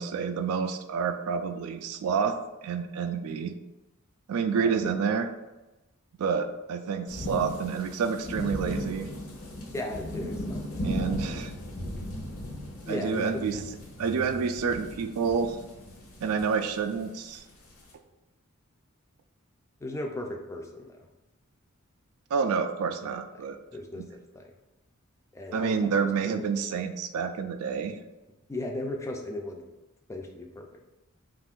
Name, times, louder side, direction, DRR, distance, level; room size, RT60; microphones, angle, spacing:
voice 1, 0.0-2.4 2.6-3.5 4.3-5.3 6.2-9.1 10.8-11.5 12.9-13.6 14.0-15.6 16.2-17.4 22.3-23.6 25.5-28.0, right 6 dB, 85° right, 9 dB, 0.3 m, -28 dB
voice 2, 4.6-5.0 9.7-11.4 12.9-13.6 19.8-21.1 23.7-24.4 25.3-26.5 28.5-29.6 30.1-30.7, left 1 dB, 15° left, 2 dB, 0.3 m, -37 dB
sound 1, 7.1-17.9, left 1 dB, 75° left, 0.7 m, -37 dB
2.5 x 2.4 x 3.5 m, 1.0 s
head